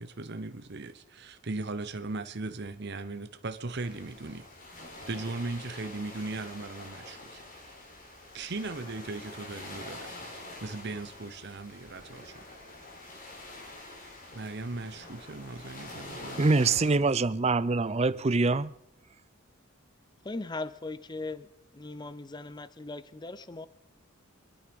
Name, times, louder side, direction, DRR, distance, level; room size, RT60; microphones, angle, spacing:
voice 1, 0.0-7.4 8.3-10.1 10.6-12.4 14.3-17.1, right 3 dB, 55° right, 0.9 m, -38 dB
sound 1, 3.7-16.9, left 2 dB, 40° left, 4.3 m, -46 dB
voice 2, 16.4-18.7, right 3 dB, 30° right, 0.5 m, -24 dB
voice 3, 20.2-21.5 21.7-23.7, left 2 dB, 20° left, 0.6 m, -38 dB
25.5 x 9.9 x 5.3 m
head